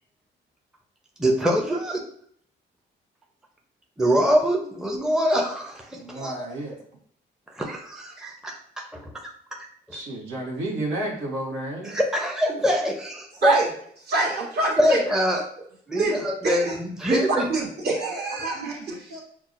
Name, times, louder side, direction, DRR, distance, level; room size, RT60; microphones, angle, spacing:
voice 1, 1.2-2.1 4.0-6.3 7.6-8.6 8.9-9.7 11.8-13.6 14.8-15.4 15.9-17.4, equal, 5° right, 0 dB, 0.6 m, -24 dB
voice 2, 5.9-6.8 9.9-12.0, right 1 dB, 80° right, -2 dB, 1.1 m, -31 dB
voice 3, 14.1-15.0 15.3-15.4 15.9-16.8 17.1-19.2, right 3 dB, 55° right, -3 dB, 1.4 m, -25 dB
5.8 x 2.0 x 2.5 m, 0.64 s
cardioid pair, 90°, 20 cm